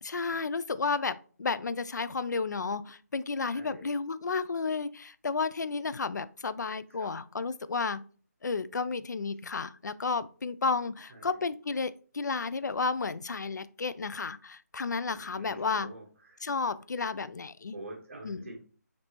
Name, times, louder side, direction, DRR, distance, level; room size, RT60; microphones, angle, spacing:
voice 1, 0.0-8.0 8.4-15.9 16.4-17.7 18.2-18.4, left 4 dB, 90° left, 15 dB, 0.4 m, -32 dB
voice 2, 3.5-3.9 6.9-7.1 11.1-11.4 15.0-16.4 17.7-18.6, right 2 dB, 45° right, -1 dB, 1.4 m, -47 dB
5.2 x 2.7 x 2.9 m, 0.41 s
figure-of-eight pair, 170°, 9 cm